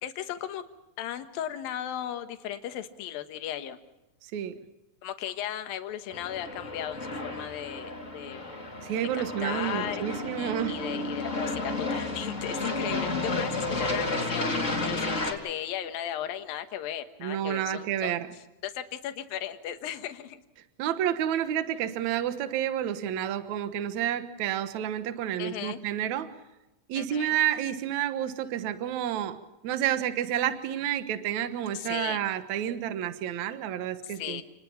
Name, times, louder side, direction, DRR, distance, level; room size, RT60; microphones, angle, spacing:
voice 1, 0.0-0.6 1.0-3.8 5.0-8.5 9.1-18.2 18.6-20.4 25.4-25.8 26.9-27.4 31.7-32.2 34.0-34.4, left 11 dB, 75° left, 8 dB, 3.1 m, -36 dB
Aircraft, 6.1-15.3, left 2 dB, 20° left, 3.5 m, -32 dB
voice 2, 8.8-10.8 17.2-18.3 20.8-26.3 26.9-29.4 29.6-34.4, right 10 dB, 60° right, 10 dB, 2.3 m, -30 dB
28.5 x 20.5 x 5.7 m, 1.0 s
omnidirectional pair, 4.3 m